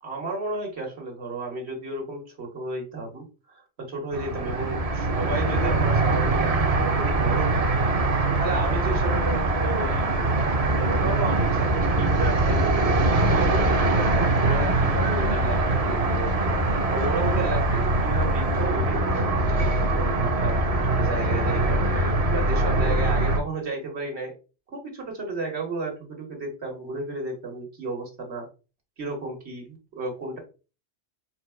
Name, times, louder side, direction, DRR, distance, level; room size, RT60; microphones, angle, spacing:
voice 1, 0.0-10.1 10.7-20.6 20.9-24.3 24.7-28.5 29.0-30.4, right 3 dB, 80° right, 1 dB, 1.7 m, -33 dB
sound 1, 4.1-23.4, right 2 dB, 45° right, 0.6 m, -23 dB
4.3 x 2.3 x 4.3 m, 0.32 s
omnidirectional pair, 1.1 m